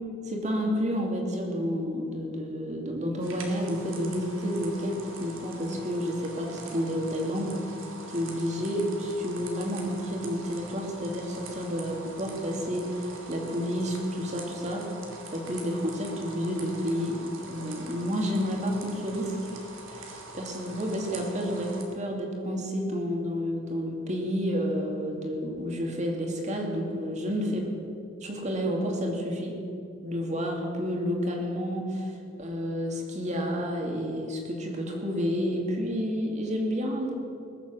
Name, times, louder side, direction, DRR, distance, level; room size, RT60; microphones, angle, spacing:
voice 1, 0.2-7.5 8.1-14.9 15.3-17.2 17.5-19.6 19.9-27.6 28.2-29.6 30.0-32.1 32.4-37.1, equal, 35° right, 1 dB, 2.4 m, -30 dB
sound 1, 3.2-21.8, right 2 dB, 85° right, 2.3 m, -44 dB
20.5 x 7.3 x 7.5 m, 2.6 s
head